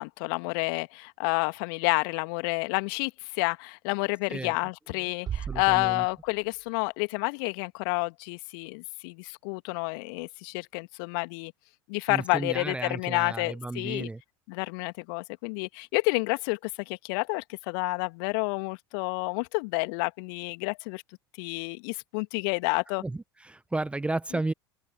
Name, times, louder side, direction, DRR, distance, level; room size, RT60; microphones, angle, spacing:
voice 1, 0.0-11.5 11.9-14.1 14.5-16.6 16.9-21.0 21.4-23.0, left 33 dB, 55° left, 2.2 m, -29 dB
sound 1, 5.3-7.2, right 9 dB, 30° right, 5.6 m, -38 dB
voice 2, 5.5-6.0 12.1-14.2 23.0-24.5, right 2 dB, 10° right, 1.0 m, -33 dB
open air
figure-of-eight pair, 75°, 14 cm